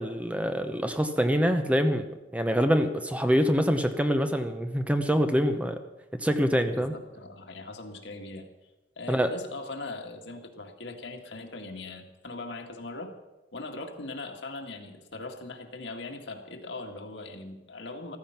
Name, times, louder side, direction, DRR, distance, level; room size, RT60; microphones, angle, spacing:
voice 1, 0.0-2.1 2.3-5.8 6.2-6.9 9.1-9.3, equal, 10° right, 8 dB, 0.8 m, -25 dB
voice 2, 6.7-8.5 9.0-13.1 13.5-18.2, left 2 dB, 75° left, 3 dB, 2.0 m, -40 dB
14.5 x 14.0 x 5.9 m, 1.0 s
head